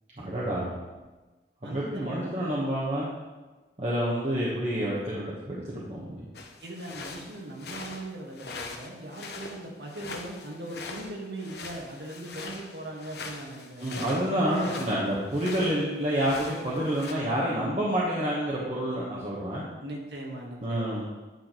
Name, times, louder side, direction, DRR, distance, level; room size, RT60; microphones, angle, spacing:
voice 1, 0.2-0.9 1.6-3.1 3.8-6.2 13.8-19.6 20.6-21.1, right 1 dB, 35° right, -7 dB, 1.1 m, -28 dB
voice 2, 1.6-2.6 6.6-14.0 14.3-14.8 19.8-21.1, right 1 dB, 80° right, -1 dB, 1.5 m, -40 dB
sound 1, 6.3-15.8 16.1-17.1, left 3 dB, 70° left, 0.8 m, -42 dB
9.0 x 6.0 x 3.0 m, 1.2 s
head